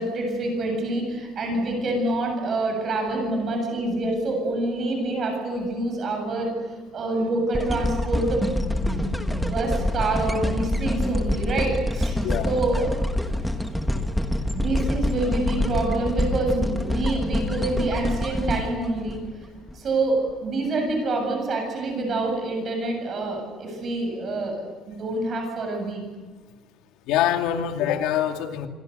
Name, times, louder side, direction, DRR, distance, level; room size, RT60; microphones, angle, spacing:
voice 1, 0.0-6.5 6.9-12.2 12.4-12.9 14.3-19.2 19.7-26.0, right 2 dB, 35° right, 3 dB, 7.8 m, -26 dB
sound 1, 7.5-19.7 20.3-20.4, left 1 dB, ahead, 1.5 m, -26 dB
voice 2, 12.2-12.5 27.1-28.7, left 10 dB, 90° left, 5 dB, 2.4 m, -24 dB
27.0 x 24.0 x 6.8 m, 1.3 s
cardioid pair, 175°, 0 cm